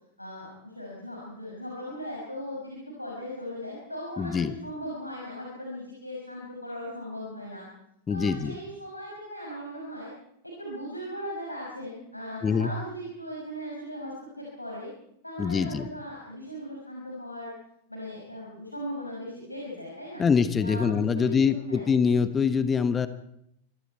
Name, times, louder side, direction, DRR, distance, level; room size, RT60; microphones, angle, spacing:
voice 1, 0.2-7.6 8.1-10.1 10.4-14.9 15.2-17.5 17.9-20.2 20.6-21.9, equal, 85° left, -3 dB, 5.8 m, -38 dB
voice 2, 4.2-4.6 8.1-8.5 12.4-12.7 15.4-15.9 20.2-23.1, left 6 dB, 20° left, 12 dB, 1.2 m, -24 dB
26.5 x 22.5 x 4.6 m, 0.76 s
figure-of-eight pair, 90°, 0 cm